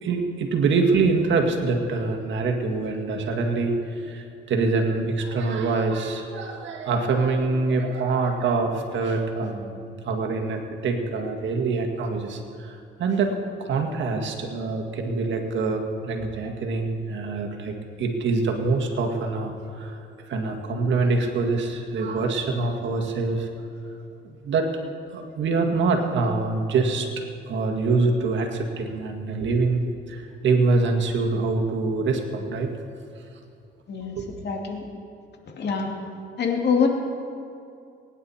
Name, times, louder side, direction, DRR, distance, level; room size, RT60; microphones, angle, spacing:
voice 1, 0.0-9.8 10.0-13.3 13.6-20.0 20.3-23.5 24.2-24.7 25.1-27.1 27.5-29.8 30.1-32.7 34.2-34.3, right 3 dB, 70° right, 2 dB, 1.9 m, -25 dB
voice 2, 34.4-34.8 35.6-35.9 36.4-36.9, left 6 dB, 60° left, 1 dB, 2.5 m, -24 dB
23.0 x 10.0 x 4.4 m, 2.5 s
cardioid pair, 90°, 20 cm